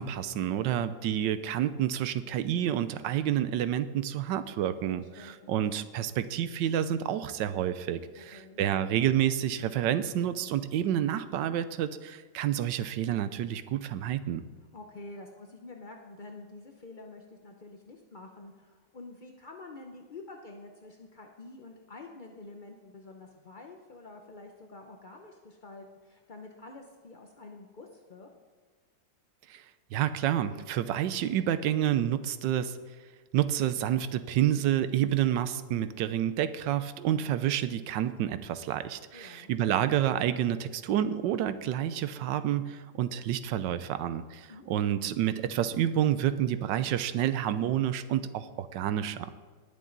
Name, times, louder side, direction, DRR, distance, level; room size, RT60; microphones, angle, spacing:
voice 1, 0.0-14.4 29.5-29.6 29.9-32.8 33.3-49.3, right 11 dB, 75° right, 13 dB, 1.3 m, -29 dB
voice 2, 4.9-5.6 8.3-8.6 14.7-28.3 39.1-39.5 44.5-44.7, left 3 dB, 60° left, 2 dB, 0.5 m, -48 dB
19.5 x 7.3 x 3.9 m, 1.5 s
omnidirectional pair, 2.0 m